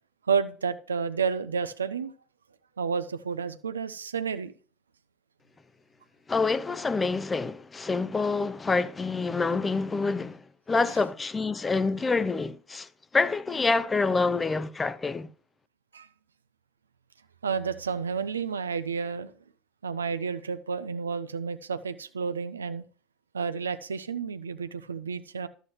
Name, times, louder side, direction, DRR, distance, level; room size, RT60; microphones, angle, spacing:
voice 1, 0.3-2.1 2.8-4.5 15.9-16.1 17.4-19.3 19.8-22.8 23.3-25.5, right 6 dB, 85° right, 0.4 m, -30 dB
voice 2, 6.3-10.4 10.7-12.9 13.1-15.3, left 4 dB, 20° left, 0.5 m, -27 dB
12.0 x 7.9 x 3.1 m
hypercardioid pair, 70°, 0 cm